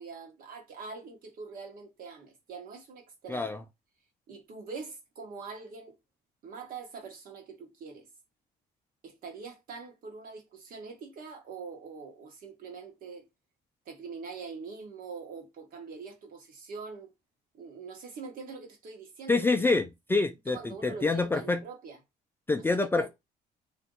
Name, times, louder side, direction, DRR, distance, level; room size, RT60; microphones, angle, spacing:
voice 1, 0.0-3.5 4.3-6.0 6.4-8.1 9.0-13.3 13.9-17.1 17.5-19.7 20.5-22.0 22.6-22.7 23.0-23.1, right 4 dB, 55° right, 1.2 m, -44 dB
voice 2, 3.3-3.6 19.3-21.6 22.5-23.1, left 3 dB, 15° left, 0.3 m, -27 dB
2.6 x 2.2 x 3.8 m
cardioid pair, 110°, 17 cm